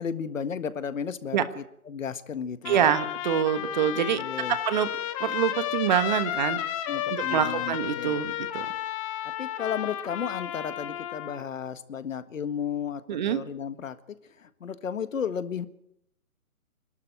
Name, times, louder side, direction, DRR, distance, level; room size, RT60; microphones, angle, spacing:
voice 1, 0.0-2.9 4.1-4.6 6.9-8.2 9.4-14.0 14.4-15.7, left 7 dB, 60° left, 12 dB, 1.7 m, -33 dB
Trumpet, 2.6-11.4, left 12 dB, 25° left, 1.6 m, -32 dB
voice 2, 2.6-4.2 4.5-6.6 7.1-8.7 13.1-13.4, right 9 dB, 30° right, 12 dB, 1.3 m, -26 dB
26.5 x 12.5 x 9.3 m, 0.77 s
hypercardioid pair, 155°, 44 cm